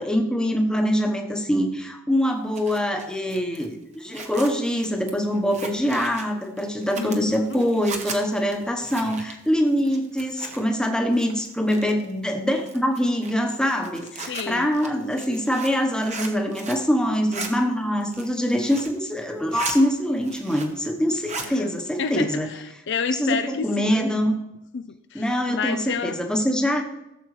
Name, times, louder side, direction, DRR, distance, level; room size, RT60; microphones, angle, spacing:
voice 1, 0.0-22.5 23.2-24.3 25.1-26.8, equal, 5° left, 2 dB, 1.0 m, -24 dB
Zipper (clothing), 2.3-10.9 11.1-12.1 12.6-16.9 17.1-17.5 18.0-19.0 19.3-19.8 20.1-20.9 21.1-21.5, right 4 dB, 30° right, 1.1 m, -37 dB
voice 2, 7.0-7.6 14.3-14.7 21.4-21.7 22.0-24.0 24.7-26.2, left 5 dB, 50° left, 9 dB, 0.4 m, -30 dB
16.0 x 7.6 x 3.2 m, 0.92 s
head